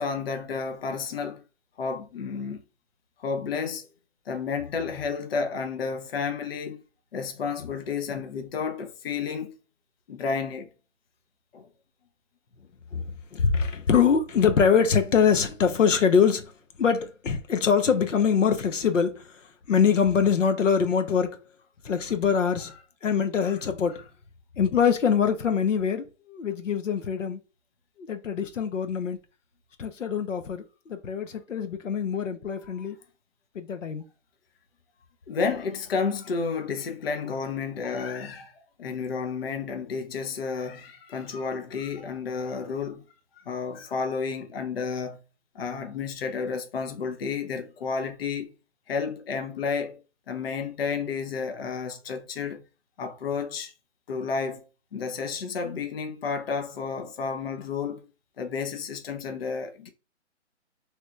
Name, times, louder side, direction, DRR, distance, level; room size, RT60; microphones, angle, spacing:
voice 1, 0.0-1.4 1.8-2.6 3.2-3.9 4.3-6.8 7.1-9.5 10.1-10.7 11.5-11.7 35.3-38.5 38.8-43.0 43.5-45.2 45.5-48.5 48.9-50.0 50.3-52.6 53.0-53.7 54.1-54.6 54.9-58.0 58.4-59.9, left 5 dB, 50° left, 0.7 m, -31 dB
voice 2, 13.3-16.5 16.8-21.4 21.8-22.7 23.0-24.0 24.6-27.4 28.0-29.2 29.8-33.0 33.5-34.0, left 6 dB, 85° left, 0.8 m, -24 dB
3.2 x 2.9 x 2.4 m
hypercardioid pair, 160°, 37 cm